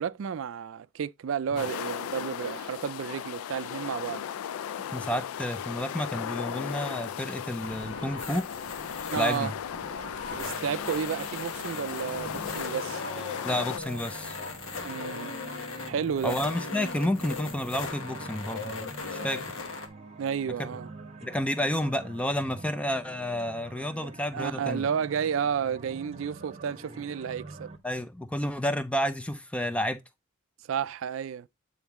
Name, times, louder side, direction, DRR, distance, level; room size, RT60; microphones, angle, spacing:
voice 1, 0.0-4.2 9.1-9.5 10.3-13.0 14.8-15.4 15.9-16.4 20.2-20.9 24.0-27.7 30.7-31.5, right 7 dB, 70° right, 0.3 m, -32 dB
sound 1, 1.6-13.8, left 9 dB, 90° left, 0.3 m, -37 dB
voice 2, 4.9-8.5 9.1-9.5 13.4-14.4 16.2-19.4 20.6-20.7 21.2-24.9 27.8-30.0, left 1 dB, 5° left, 0.4 m, -30 dB
sound 2, 7.6-19.9, left 4 dB, 75° left, 1.3 m, -38 dB
sound 3, 10.3-27.8, right 2 dB, 30° right, 0.9 m, -46 dB
9.0 x 3.9 x 3.5 m
head